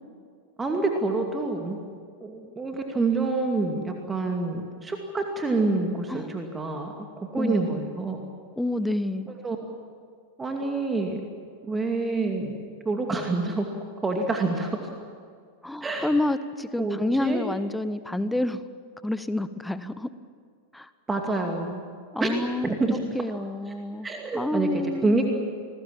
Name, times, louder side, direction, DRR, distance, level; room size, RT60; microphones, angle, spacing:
voice 1, 0.6-1.8 2.2-7.1 7.3-8.2 9.4-9.6 10.4-11.2 11.7-12.5 12.9-13.7 14.0-14.8 15.8-16.1 16.8-17.4 21.1-21.8 22.2-22.3 22.6-23.0 24.0-25.4, right 3 dB, 15° right, 2 dB, 2.5 m, -27 dB
voice 2, 7.4-7.7 8.6-9.3 15.6-18.6 19.0-20.1 20.7-20.9 22.1-22.8 23.1-24.1 24.3-25.2, left 1 dB, 5° left, 13 dB, 1.0 m, -28 dB
29.0 x 20.5 x 7.4 m, 2.2 s
figure-of-eight pair, 90°, 0 cm